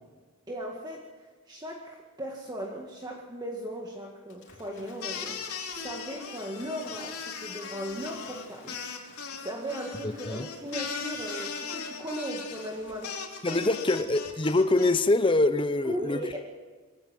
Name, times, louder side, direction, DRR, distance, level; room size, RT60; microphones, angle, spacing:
voice 1, 0.5-8.8 9.4-13.9 15.8-16.4, equal, 20° right, 1.9 m, -38 dB
Waves surf / Splash splatter, 4.3-13.6, left 4 dB, 55° left, 3.6 m, -54 dB
sound 1, 5.0-14.9, left 5 dB, 85° left, 3.3 m, -38 dB
voice 2, 10.0-10.4 13.4-16.2, left 2 dB, 20° left, 0.7 m, -24 dB
22.0 x 17.0 x 7.6 m
head